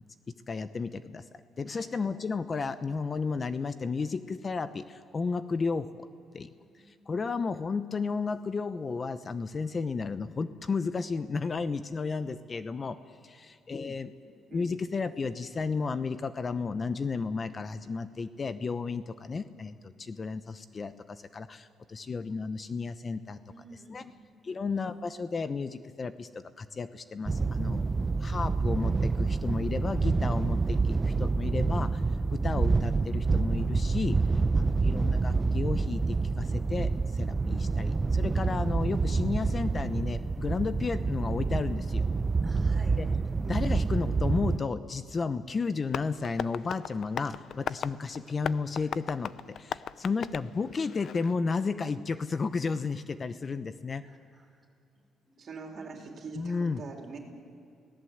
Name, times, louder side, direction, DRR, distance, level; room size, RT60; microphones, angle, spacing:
voice 1, 0.5-1.2 1.6-6.1 6.3-6.5 6.9-13.0 13.2-14.1 14.5-23.4 23.9-24.1 24.4-27.9 28.2-32.0 32.3-34.2 34.6-36.0 36.4-42.1 43.0-43.1 43.5-49.3 49.6-54.0 56.4-56.8, left 4 dB, 35° left, 12 dB, 0.8 m, -33 dB
voice 2, 6.6-7.1 23.5-24.8 42.4-43.0 54.0-54.6 55.4-55.8, right 2 dB, 10° right, 0 dB, 5.3 m, -54 dB
sound 1, 27.3-44.6, right 4 dB, 25° right, 0.7 m, -27 dB
Tap, 45.9-51.4, left 8 dB, 65° left, 0.6 m, -38 dB
voice 3, 55.4-57.2, right 4 dB, 55° right, 2 dB, 3.7 m, -43 dB
29.5 x 18.0 x 8.0 m, 2.5 s
cardioid pair, 90°, 0 cm